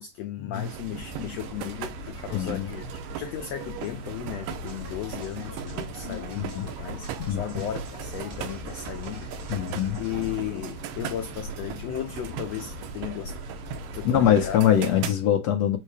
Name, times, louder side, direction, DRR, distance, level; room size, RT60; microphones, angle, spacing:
voice 1, 0.0-2.8 3.2-9.3 10.0-13.3 13.9-14.6 14.9-15.0, left 11 dB, 85° left, 1.4 m, -35 dB
sound 1, 0.5-15.2, right 11 dB, 80° right, 2.4 m, -39 dB
sound 2, 0.8-14.6, left 2 dB, 45° left, 3.0 m, -41 dB
voice 2, 2.3-2.7 6.1-6.7 7.2-7.4 9.5-10.0 14.0-15.8, left 10 dB, 70° left, 1.7 m, -23 dB
sound 3, 4.5-10.3, equal, 55° right, 0.9 m, -45 dB
5.6 x 4.1 x 4.9 m
omnidirectional pair, 3.9 m